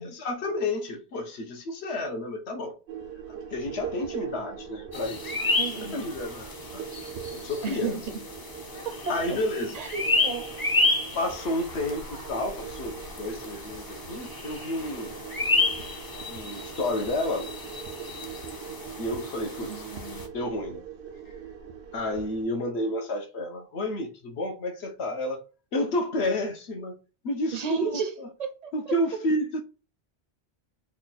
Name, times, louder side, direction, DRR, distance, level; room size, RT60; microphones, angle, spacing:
voice 1, 0.0-2.8 3.5-5.4 5.7-6.9 7.3-8.0 9.1-9.8 11.1-15.2 16.3-17.5 19.0-19.9 20.3-20.8 21.9-25.4 25.7-27.0 27.2-28.3 28.7-29.6, left 1 dB, 80° left, 1.1 m, -31 dB
sound 1, 2.9-22.5, right 8 dB, 80° right, 0.9 m, -41 dB
sound 2, 4.9-20.3, left 2 dB, 30° left, 0.4 m, -31 dB
voice 2, 5.6-6.0 7.6-8.0 8.8-9.4 9.7-10.5 19.7-20.2 27.5-28.7, right 6 dB, 45° right, 0.6 m, -33 dB
3.4 x 2.3 x 4.0 m
omnidirectional pair, 1.1 m